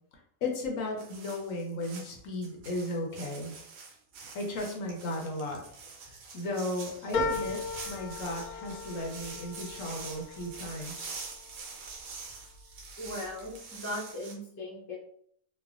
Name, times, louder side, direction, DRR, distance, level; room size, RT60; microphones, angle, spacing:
voice 1, 0.4-3.6 4.3-5.6 6.3-11.1, left 2 dB, 70° left, 1 dB, 0.9 m, -35 dB
sound 1, 1.0-14.3, right 4 dB, 85° right, 1.1 m, -45 dB
sound 2, 7.1-11.9 12.4-13.1 13.4-13.5, left 3 dB, 85° left, 1.1 m, -37 dB
voice 2, 13.0-15.0, left 1 dB, 25° left, -5 dB, 0.4 m, -38 dB
3.1 x 2.1 x 2.4 m, 0.66 s
omnidirectional pair, 1.5 m